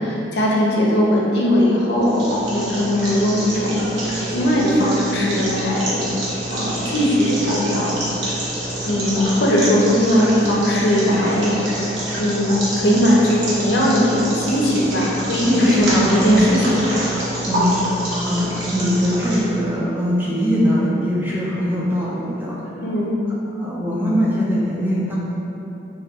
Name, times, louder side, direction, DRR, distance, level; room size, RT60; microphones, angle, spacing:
voice 1, 0.0-6.1 6.5-7.9 8.8-11.9 12.2-17.0 17.6-17.8 22.8-23.1, equal, 70° left, -4 dB, 0.5 m, -19 dB
sound 1, 2.0-19.4, right 1 dB, 90° right, 0.8 m, -27 dB
voice 2, 15.6-16.5 17.1-18.0 18.2-22.6 23.6-25.2, equal, 10° right, -6 dB, 0.3 m, -21 dB
4.3 x 2.3 x 2.2 m, 2.9 s
head